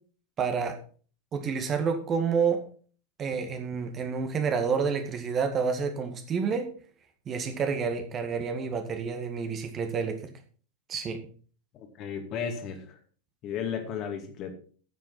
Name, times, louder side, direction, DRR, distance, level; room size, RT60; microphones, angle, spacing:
voice 1, 0.4-0.8 1.3-2.6 3.2-6.7 7.3-10.3 10.9-11.2, right 5 dB, 25° right, 6 dB, 1.8 m, -29 dB
voice 2, 11.7-13.0 13.4-14.5, left 7 dB, 35° left, 6 dB, 2.3 m, -34 dB
9.9 x 7.6 x 5.8 m, 0.42 s
figure-of-eight pair, 90°, 0 cm